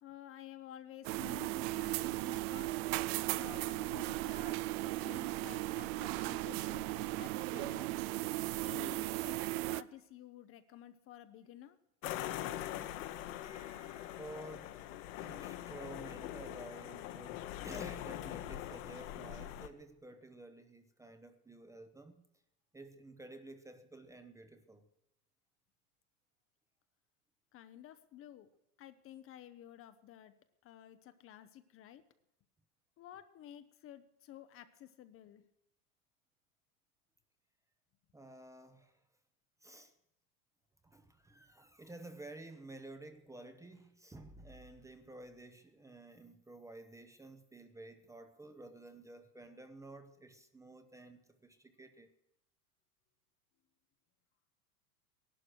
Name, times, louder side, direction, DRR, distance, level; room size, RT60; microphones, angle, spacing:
voice 1, 0.0-2.8 3.3-7.9 8.6-11.8 27.5-28.5 28.8-30.3 30.6-32.0 33.0-35.4, left 12 dB, 30° left, 11 dB, 0.7 m, -53 dB
sound 1, 1.0-9.8, right 18 dB, 45° right, 0.4 m, -36 dB
sound 2, 12.0-19.7, left 13 dB, 60° left, 1.2 m, -43 dB
voice 2, 13.2-22.2 22.7-24.8 38.1-39.0 39.6-39.9 40.8-52.1, right 2 dB, 5° right, 8 dB, 0.7 m, -52 dB
16.5 x 11.5 x 6.2 m, 0.85 s
hypercardioid pair, 120°, 46 cm